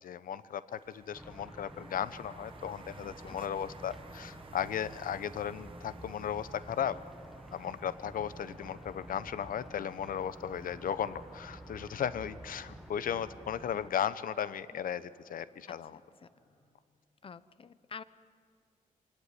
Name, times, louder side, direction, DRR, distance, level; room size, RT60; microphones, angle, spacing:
voice 1, 0.0-7.0 7.5-16.0, left 9 dB, 80° left, 15 dB, 0.9 m, -36 dB
sound 1, 0.7-11.4, right 5 dB, 40° right, 1.2 m, -56 dB
sound 2, 1.1-13.9, right 1 dB, ahead, 1.6 m, -50 dB
voice 2, 3.0-3.4 13.7-14.1 14.7-14.8 15.7-16.3 17.2-18.0, left 6 dB, 40° left, 16 dB, 0.8 m, -49 dB
sound 3, 8.0-16.6, left 2 dB, 55° left, 5.0 m, -65 dB
25.0 x 17.5 x 10.0 m, 2.1 s
wide cardioid pair, 140°, 14 cm